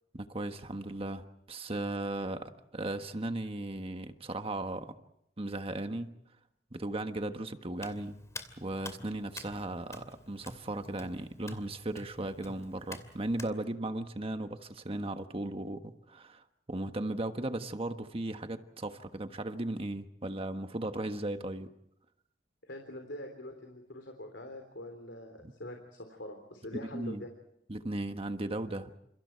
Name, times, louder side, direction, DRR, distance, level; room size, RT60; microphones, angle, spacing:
voice 1, 0.1-4.9 5.4-6.1 6.7-8.2 8.6-21.7 25.4-25.5 26.9-27.2 27.7-28.9, right 2 dB, 30° right, 7 dB, 1.4 m, -36 dB
Hands, 7.8-13.5, left 2 dB, 15° left, 2.6 m, -49 dB
voice 2, 22.6-27.3, left 1 dB, 70° left, 5 dB, 3.5 m, -44 dB
29.5 x 28.0 x 4.6 m, 0.76 s
head